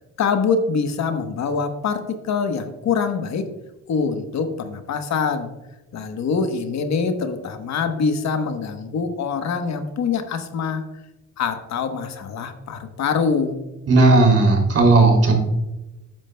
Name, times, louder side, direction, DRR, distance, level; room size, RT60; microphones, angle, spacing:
voice 1, 0.2-3.5 3.9-5.5 5.9-10.8 11.4-13.6, left 5 dB, 65° left, 7 dB, 1.1 m, -24 dB
voice 2, 13.9-15.4, right 3 dB, 50° right, 2 dB, 2.9 m, -14 dB
12.0 x 8.9 x 2.2 m, 1.0 s
cardioid pair, 90°, 30 cm